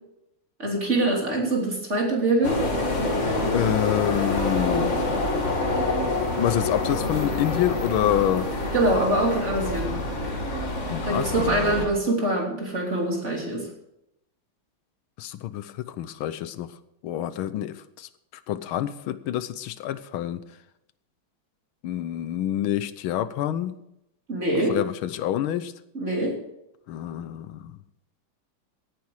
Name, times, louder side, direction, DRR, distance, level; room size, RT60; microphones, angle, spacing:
voice 1, 0.6-2.6 8.7-9.9 11.0-13.7 24.3-24.8 25.9-26.3, right 1 dB, 35° right, -1 dB, 3.6 m, -24 dB
sound 1, 2.4-11.9, left 2 dB, 35° left, 2.4 m, -27 dB
voice 2, 3.5-5.0 6.4-8.5 10.9-11.9 15.2-16.8 17.0-18.1 18.5-20.4 21.8-23.8 24.7-25.7 26.9-27.7, left 11 dB, 85° left, 14 dB, 1.6 m, -27 dB
17.0 x 9.7 x 4.8 m, 0.83 s
omnidirectional pair, 2.2 m